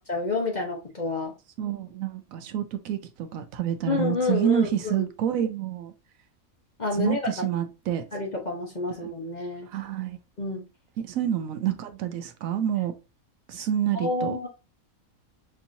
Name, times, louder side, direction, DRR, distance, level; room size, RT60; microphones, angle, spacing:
voice 1, 0.0-1.3 3.9-5.1 6.8-7.3 8.1-9.7 10.4-10.6 13.9-14.5, left 3 dB, 35° left, 0.9 m, -29 dB
voice 2, 1.6-5.9 6.9-8.0 9.0-9.1 9.7-10.2 11.0-12.9 13.5-14.4, right 10 dB, 75° right, 1.0 m, -28 dB
5.3 x 2.9 x 2.6 m
omnidirectional pair, 1.5 m